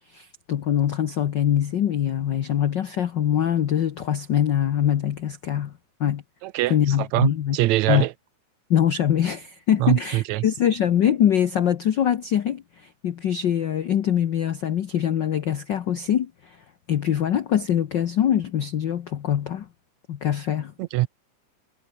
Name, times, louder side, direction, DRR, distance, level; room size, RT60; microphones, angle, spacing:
voice 1, 0.1-5.7 6.0-6.2 6.7-7.6 7.9-8.0 8.7-16.6 16.9-19.7 20.1-20.7, left 10 dB, 75° left, 1.0 m, -23 dB
voice 2, 6.4-8.1 9.8-10.5 20.8-21.1, right 17 dB, 80° right, 1.9 m, -23 dB
omnidirectional pair, 3.4 m